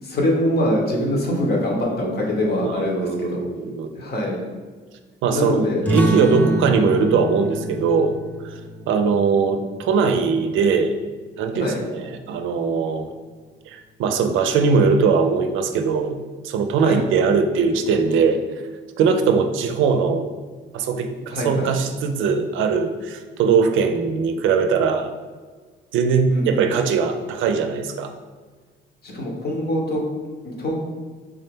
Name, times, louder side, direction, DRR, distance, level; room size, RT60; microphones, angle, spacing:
voice 1, 0.0-3.4 3.9-4.4 5.3-5.8 6.4-6.7 11.5-11.8 16.8-17.0 21.3-21.7 26.3-26.6 29.0-30.0 30.4-30.8, left 1 dB, 55° left, -1 dB, 1.0 m, -24 dB
voice 2, 2.6-3.9 5.2-8.2 8.4-8.5 8.9-10.9 11.4-13.1 13.7-16.2 16.4-18.4 19.0-20.3 20.7-25.1 25.9-28.1, right 5 dB, 80° right, 7 dB, 0.4 m, -20 dB
sound 1, 5.8-11.0, equal, 10° left, 0.6 m, -27 dB
3.6 x 2.8 x 3.5 m, 1.4 s
cardioid pair, 90°, 20 cm